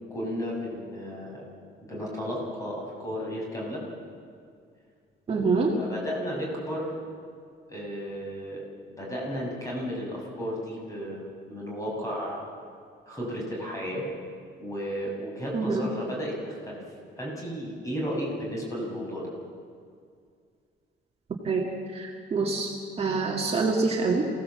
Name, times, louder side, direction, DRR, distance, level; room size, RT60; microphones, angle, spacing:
voice 1, 0.1-1.4 1.8-3.8 5.3-5.5 5.8-7.0 7.7-8.6 9.0-12.4 13.1-14.1 14.6-16.8 17.2-19.3, equal, 15° left, -3 dB, 6.1 m, -33 dB
voice 2, 5.3-5.7 15.5-15.8 21.4-24.2, right 4 dB, 35° right, -1 dB, 2.0 m, -26 dB
27.5 x 17.5 x 7.6 m, 2.2 s
cardioid pair, 180°, 19 cm